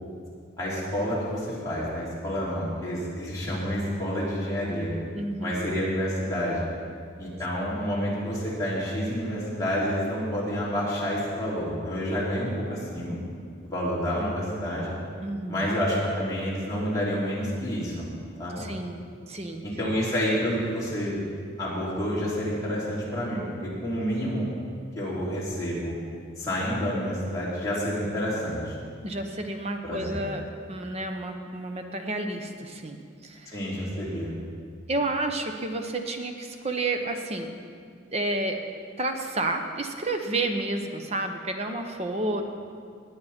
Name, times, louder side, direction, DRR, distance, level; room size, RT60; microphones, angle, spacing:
voice 1, 0.6-4.9 5.4-6.7 7.2-13.2 13.7-14.9 15.5-18.1 18.4-18.6 19.6-21.2 21.6-24.5 24.9-25.9 26.4-28.7 29.8-30.2 33.5-34.3, equal, 15° left, -8 dB, 3.4 m, -29 dB
voice 2, 5.2-5.6 15.2-15.7 18.6-19.7 29.0-30.4 30.7-33.6 34.9-37.5 37.9-38.6 39.0-42.4, right 2 dB, 30° right, 5 dB, 0.8 m, -30 dB
19.5 x 8.5 x 4.4 m, 2.2 s
head